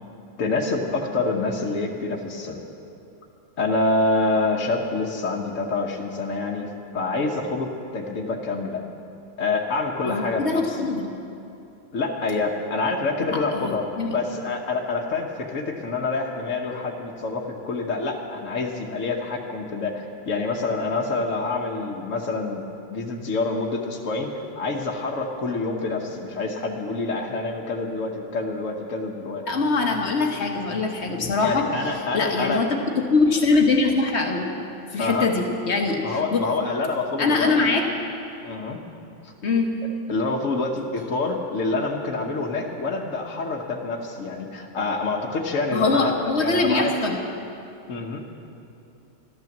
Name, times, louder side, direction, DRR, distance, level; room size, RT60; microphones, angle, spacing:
voice 1, 0.4-2.6 3.6-6.7 6.9-8.8 9.4-10.9 11.9-13.8 14.1-29.5 31.4-32.6 35.0-35.4 36.0-37.7 38.4-38.8 39.2-39.3 40.1-46.1 46.4-46.9 47.9-48.2, left 3 dB, 90° left, 1 dB, 1.5 m, -27 dB
voice 2, 10.0-11.1 13.3-14.2 29.5-31.7 32.1-34.5 34.9-36.4 37.2-37.9 39.4-39.8 45.7-47.3, left 3 dB, 60° left, 2 dB, 1.6 m, -23 dB
12.5 x 12.0 x 7.2 m, 2.7 s
omnidirectional pair, 1.3 m